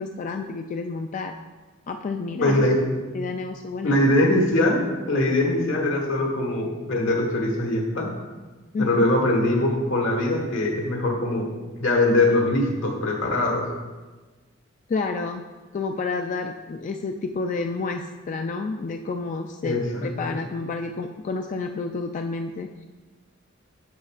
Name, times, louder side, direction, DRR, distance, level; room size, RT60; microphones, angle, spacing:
voice 1, 0.0-1.3 1.9-2.6 3.1-4.0 8.7-8.9 14.9-15.4 15.7-22.9, left 4 dB, 40° left, 5 dB, 0.3 m, -30 dB
voice 2, 2.4-2.7 3.8-8.1 8.8-11.5 11.8-13.6 19.6-20.1, left 1 dB, 80° left, 1 dB, 1.4 m, -22 dB
9.4 x 6.6 x 2.4 m, 1.3 s
head